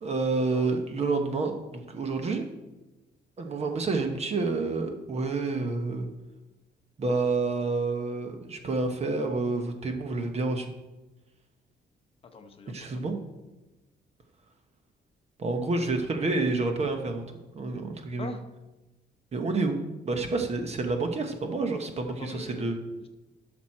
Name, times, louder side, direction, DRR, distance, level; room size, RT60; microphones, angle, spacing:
voice 1, 0.0-2.5 3.4-6.1 7.0-10.7 12.7-13.2 15.4-17.2 17.5-18.3 19.3-22.8, right 3 dB, 35° right, 5 dB, 0.9 m, -29 dB
voice 2, 12.2-13.0 18.2-18.4 22.2-23.1, left 3 dB, 30° left, 6 dB, 0.8 m, -43 dB
12.0 x 6.2 x 4.3 m, 1.1 s
cardioid pair, 170°, 19 cm